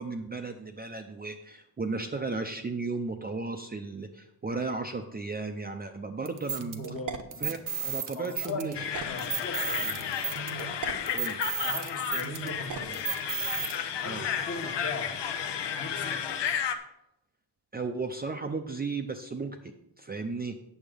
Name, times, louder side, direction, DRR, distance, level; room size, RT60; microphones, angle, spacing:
voice 1, 0.0-6.8 7.4-8.9 11.1-11.4 14.0-14.3 17.7-20.6, right 3 dB, 25° right, 4 dB, 0.5 m, -35 dB
sound 1, 6.3-13.8, right 7 dB, 50° right, 0.9 m, -34 dB
voice 2, 6.8-7.5 8.1-8.7 9.0-10.0 11.6-13.1 14.0-15.2 15.8-16.3, left 3 dB, 35° left, 4 dB, 1.3 m, -39 dB
sound 2, 8.7-16.8, left 8 dB, 80° left, 0.9 m, -33 dB
9.2 x 7.2 x 5.1 m, 0.83 s
wide cardioid pair, 165°, 42 cm